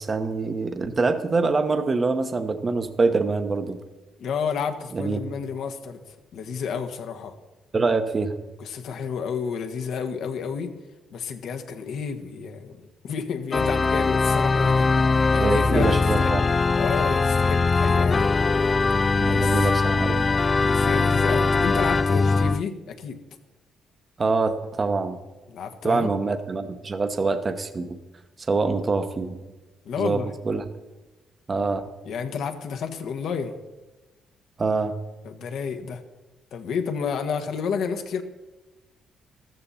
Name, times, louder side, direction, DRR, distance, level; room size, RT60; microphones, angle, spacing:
voice 1, 0.0-3.8 4.9-5.2 7.7-8.4 15.4-16.4 19.2-20.3 24.2-25.2 25.8-28.0 28.5-29.4 30.0-30.7 31.5-31.9 34.6-34.9, right 3 dB, 35° right, 8 dB, 1.0 m, -25 dB
voice 2, 4.2-6.0 6.3-7.3 8.6-10.7 11.1-16.3 16.7-18.3 19.3-19.7 20.6-23.2 25.5-26.1 29.8-30.3 32.0-33.6 35.2-36.0 36.5-38.2, left 6 dB, 75° left, 6 dB, 1.5 m, -30 dB
Organ, 13.5-22.6, left 4 dB, 30° left, 0.4 m, -21 dB
14.0 x 13.5 x 4.2 m, 1.1 s
cardioid pair, 90°, 0 cm